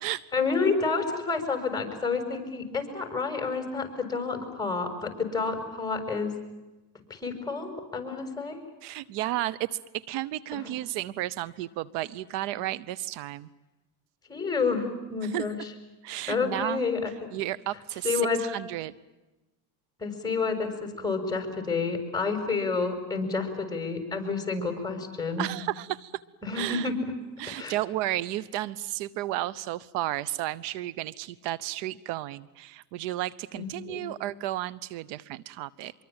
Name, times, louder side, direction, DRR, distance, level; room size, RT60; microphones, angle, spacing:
voice 1, 0.3-6.3 7.1-8.6 10.6-10.7 14.3-15.6 16.3-17.1 18.0-18.4 20.0-25.5 26.4-26.9 27.6-27.8 33.5-34.1, left 4 dB, 10° left, 5 dB, 6.7 m, -29 dB
voice 2, 8.8-13.5 15.2-15.4 16.0-16.8 17.3-18.9 25.4-26.2 26.5-26.9 27.4-35.9, right 15 dB, 70° right, 20 dB, 1.0 m, -33 dB
25.5 x 23.5 x 8.9 m, 1.1 s
supercardioid pair, 115°, 43 cm